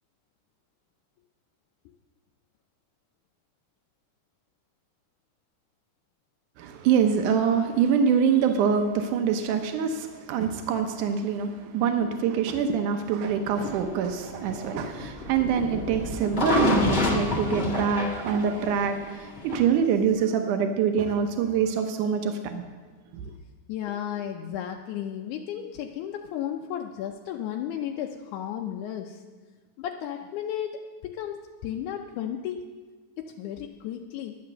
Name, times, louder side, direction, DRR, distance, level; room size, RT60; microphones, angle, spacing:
voice 1, 6.6-22.6, right 7 dB, 90° right, 6 dB, 2.4 m, -25 dB
sound 1, 13.6-19.5, left 2 dB, 25° left, 1.5 m, -28 dB
voice 2, 23.7-29.2 29.8-32.7 33.2-34.4, left 10 dB, 80° left, 2 dB, 2.1 m, -34 dB
10.5 x 10.0 x 6.6 m, 1.4 s
omnidirectional pair, 3.5 m